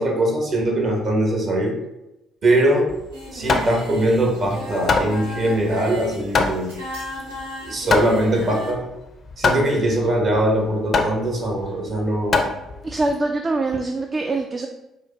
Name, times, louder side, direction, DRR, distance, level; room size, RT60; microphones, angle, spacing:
voice 1, 0.0-1.8 2.4-2.9 3.3-6.7 7.6-8.8 9.4-12.5, right 1 dB, 50° right, 1 dB, 1.0 m, -21 dB
Hammer, 2.9-13.1, left 4 dB, 45° left, 0.4 m, -25 dB
Singing, 3.1-8.7, equal, 80° right, 0.8 m, -34 dB
voice 2, 12.8-14.7, right 2 dB, 30° right, 4 dB, 0.3 m, -23 dB
4.8 x 2.1 x 3.0 m, 0.93 s
figure-of-eight pair, 50°, 0 cm